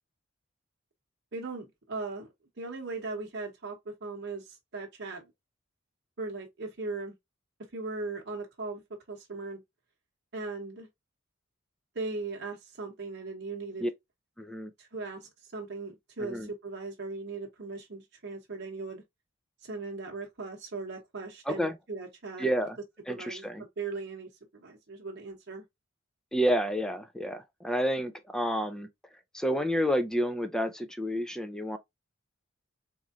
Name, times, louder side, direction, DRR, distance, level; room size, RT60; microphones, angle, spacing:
voice 1, 1.3-2.3 2.6-5.3 6.2-7.1 7.7-8.8 9.1-9.6 10.3-10.9 11.9-13.9 14.8-19.0 19.6-22.5 23.1-23.5 23.8-25.6, right 3 dB, 55° right, 0.9 m, -38 dB
voice 2, 14.4-14.7 16.2-16.5 21.5-21.8 22.4-22.8 23.1-23.6 26.3-28.9 29.3-31.8, equal, 5° left, 0.4 m, -29 dB
3.7 x 3.1 x 2.4 m
head